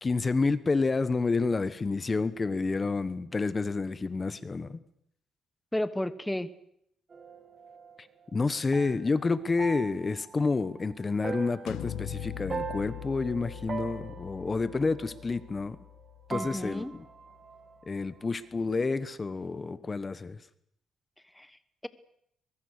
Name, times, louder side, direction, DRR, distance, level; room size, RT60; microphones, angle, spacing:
voice 1, 0.0-4.8 8.3-15.8 16.3-17.0 17.9-20.4, left 4 dB, 30° left, 14 dB, 1.2 m, -29 dB
voice 2, 5.7-6.5 16.3-16.9 21.3-21.9, left 1 dB, 5° left, 13 dB, 1.2 m, -33 dB
sound 1, 7.1-16.0 16.3-18.4, right 5 dB, 40° right, 2.8 m, -42 dB
sound 2, 11.7-17.3, left 14 dB, 85° left, 0.9 m, -42 dB
23.5 x 22.0 x 6.6 m, 0.73 s
cardioid pair, 90°, 0 cm